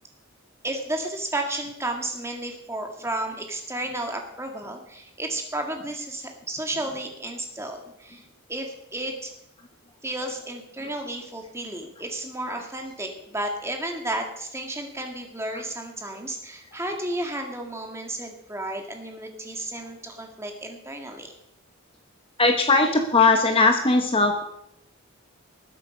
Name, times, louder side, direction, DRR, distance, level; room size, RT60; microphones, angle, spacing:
voice 1, 0.6-8.2 8.5-9.3 10.0-21.4, right 1 dB, 10° right, 3 dB, 1.9 m, -32 dB
voice 2, 22.4-24.4, left 3 dB, 25° left, 4 dB, 1.0 m, -20 dB
19.5 x 8.1 x 5.2 m, 0.78 s
head